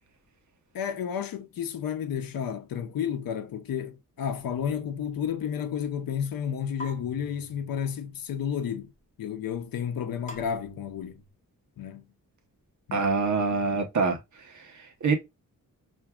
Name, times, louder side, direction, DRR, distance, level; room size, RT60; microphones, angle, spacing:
voice 1, 0.7-8.9 9.2-11.2 11.8-12.1 12.9-13.1 13.3-13.4, left 8 dB, 85° left, 0.6 m, -32 dB
sound 1, 4.4-5.0 6.8-8.1 10.3-11.3, left 1 dB, 20° left, 1.2 m, -46 dB
voice 2, 12.9-15.2, right 4 dB, 55° right, 0.9 m, -26 dB
5.8 x 2.6 x 2.2 m
wide cardioid pair, 180°, 34 cm